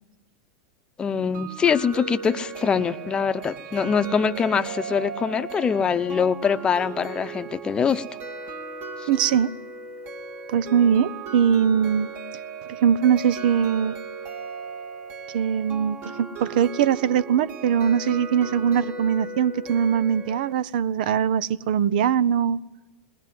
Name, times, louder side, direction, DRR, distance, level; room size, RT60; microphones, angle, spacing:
voice 1, 1.0-8.0 9.0-9.1, left 6 dB, 20° left, 0.8 m, -23 dB
sound 1, 1.3-20.5, right 5 dB, 40° right, 2.0 m, -37 dB
voice 2, 9.1-9.5 10.5-12.1 12.7-13.9 15.3-22.6, right 8 dB, 70° right, 0.7 m, -21 dB
21.0 x 19.5 x 7.7 m
supercardioid pair, 135°, 5 cm